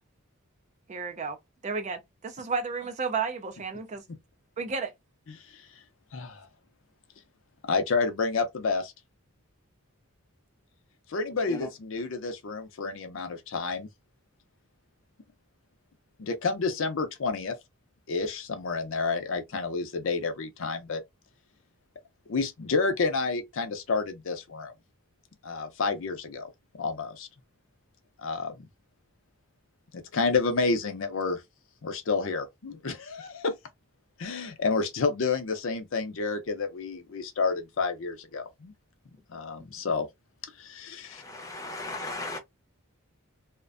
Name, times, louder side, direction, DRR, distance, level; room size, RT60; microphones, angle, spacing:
voice 1, 0.9-1.4 1.6-4.0 4.6-4.9, right 5 dB, 30° right, 0.3 m, -32 dB
voice 2, 5.3-5.7 6.1-6.5 7.6-8.9 11.1-13.9 16.2-17.5 18.1-21.0 22.3-24.7 25.4-26.5 26.8-27.3 28.2-28.7 29.9-31.4 31.8-33.5 34.2-38.7 39.3-40.1 40.6-41.2, left 4 dB, 60° left, 0.5 m, -30 dB
voice 3, 41.1-42.4, left 2 dB, 15° left, 0.6 m, -36 dB
2.4 x 2.1 x 2.4 m
head